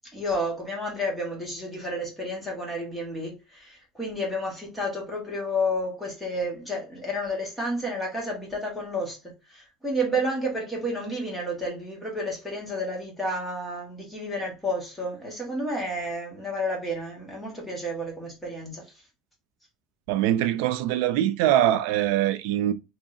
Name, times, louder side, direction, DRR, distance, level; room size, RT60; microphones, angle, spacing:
voice 1, 0.1-18.8, equal, 5° left, 1.4 m, -31 dB
voice 2, 20.1-22.7, right 12 dB, 85° right, 0.4 m, -23 dB
3.0 x 2.8 x 3.9 m
cardioid pair, 175°, 0 cm